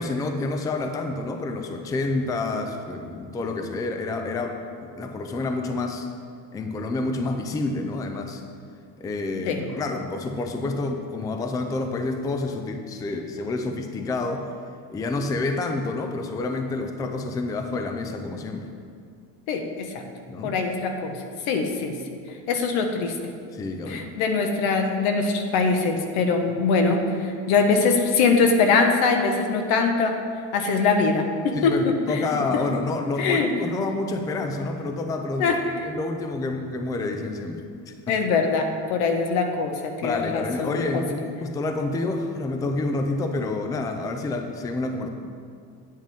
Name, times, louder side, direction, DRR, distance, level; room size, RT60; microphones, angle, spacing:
voice 1, 0.0-6.1 6.5-8.4 9.0-14.5 14.9-18.7 20.3-20.5 23.5-24.1 31.5-35.6 35.8-37.7 38.1-38.2 40.0-45.1, left 2 dB, 10° left, 5 dB, 0.3 m, -28 dB
voice 2, 19.5-20.0 20.4-21.2 21.5-22.0 22.3-23.2 23.9-30.2 30.5-32.4 33.2-33.5 35.4-35.8 38.1-41.0, left 4 dB, 80° left, 4 dB, 1.2 m, -23 dB
9.0 x 9.0 x 3.5 m, 2.2 s
cardioid pair, 155°, 37 cm